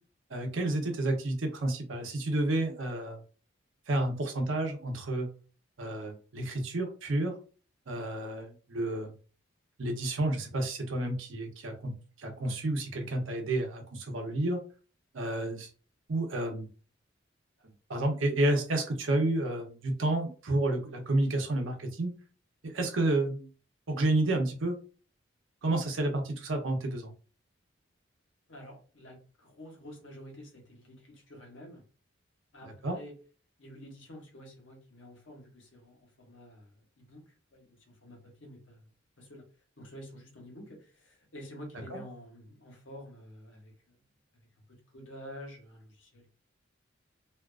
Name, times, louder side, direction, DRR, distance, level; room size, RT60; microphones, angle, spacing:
voice 1, 0.3-3.2 3.9-5.3 5.8-7.3 7.9-9.1 9.8-11.9 12.2-14.6 15.1-15.7 16.1-16.7 17.9-22.1 22.6-23.5 23.9-24.8 25.6-27.1 32.6-33.0 41.9-42.0, right 2 dB, 90° right, 3 dB, 0.7 m, -30 dB
voice 2, 28.5-31.8 32.5-33.1 33.6-37.2 37.5-38.8 39.2-39.4 39.8-43.9 44.9-46.3, equal, 75° left, 0 dB, 1.0 m, -49 dB
2.4 x 2.3 x 2.4 m, 0.37 s
head